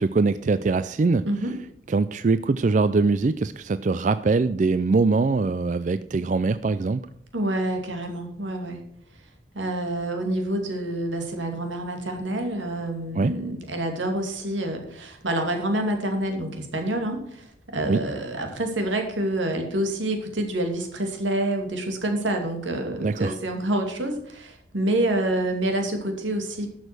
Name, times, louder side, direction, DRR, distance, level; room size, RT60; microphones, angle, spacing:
voice 1, 0.0-1.2 1.9-7.0 13.2-13.3 17.9-18.0 23.0-23.3, right 3 dB, 40° right, 13 dB, 0.3 m, -22 dB
voice 2, 7.3-8.8 9.5-26.7, right 1 dB, 85° right, 4 dB, 2.6 m, -27 dB
12.0 x 6.5 x 6.0 m, 0.69 s
head